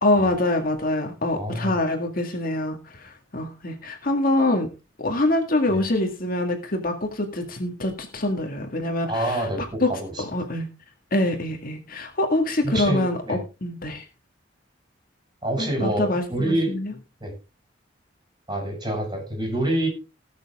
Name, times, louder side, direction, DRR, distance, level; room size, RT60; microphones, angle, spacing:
voice 1, 0.0-4.7 5.0-9.5 9.8-9.9 10.2-10.7 11.1-14.0 15.6-16.9, left 1 dB, 50° left, 4 dB, 2.0 m, -25 dB
voice 2, 1.3-1.7 5.7-5.8 9.1-10.2 12.6-13.4 15.4-16.8 17.2-17.3 18.5-19.9, right 1 dB, 25° right, 1 dB, 6.4 m, -27 dB
19.0 x 6.9 x 3.6 m, 0.30 s
head